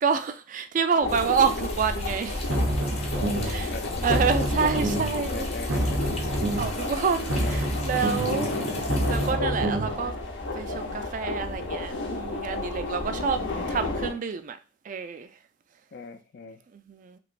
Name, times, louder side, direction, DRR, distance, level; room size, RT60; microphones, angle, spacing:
voice 1, 0.0-2.5 3.4-3.7 4.0-8.5 9.1-10.1 10.5-14.6 14.8-15.3 16.7-17.2, right 6 dB, 45° right, 0.3 m, -28 dB
sound 1, 1.0-14.1, left 2 dB, 80° left, 0.8 m, -32 dB
sound 2, 1.1-9.3, left 3 dB, 35° left, 0.7 m, -41 dB
sound 3, 2.3-3.6 3.9-5.2 5.5-6.8 7.1-10.0, right 1 dB, 85° right, 0.7 m, -28 dB
voice 2, 3.1-4.4 4.7-5.0 5.2-6.0 7.3-8.6 13.1-14.1 15.9-16.6, left 4 dB, 55° left, 0.4 m, -39 dB
3.2 x 2.9 x 2.5 m
head